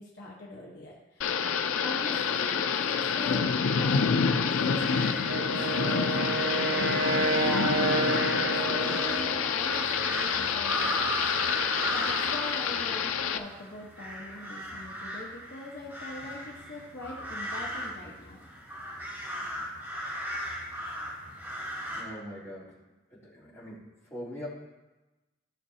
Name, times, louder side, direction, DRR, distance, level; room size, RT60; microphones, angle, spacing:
voice 1, 0.0-1.4 1.8-3.4 3.8-6.4 7.4-11.5 11.8-18.4, left 1 dB, 55° left, -3 dB, 1.2 m, -41 dB
Thunder / Rain, 1.2-13.4, left 6 dB, 85° left, 0.5 m, -28 dB
Crows Cawing, 4.6-22.0, equal, 10° right, 2.4 m, -37 dB
Wind instrument woodwind instrument, 5.3-9.5, right 3 dB, 60° right, 0.8 m, -30 dB
voice 2, 21.9-22.8 23.1-24.5, equal, 15° left, -10 dB, 3.2 m, -42 dB
15.5 x 6.2 x 2.8 m, 1.1 s
head